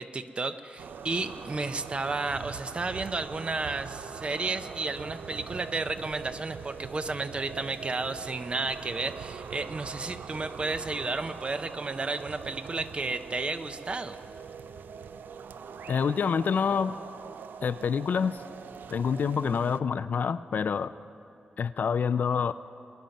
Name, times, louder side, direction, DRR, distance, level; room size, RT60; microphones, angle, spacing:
voice 1, 0.0-14.2, right 3 dB, 35° right, 10 dB, 0.6 m, -32 dB
sound 1, 0.8-19.8, right 6 dB, 90° right, 0.4 m, -42 dB
voice 2, 15.9-17.0 17.6-18.3 18.9-20.9 21.6-22.5, left 6 dB, 65° left, 14 dB, 0.4 m, -27 dB
21.0 x 10.5 x 5.3 m, 2.7 s
wide cardioid pair, 105°, 3 cm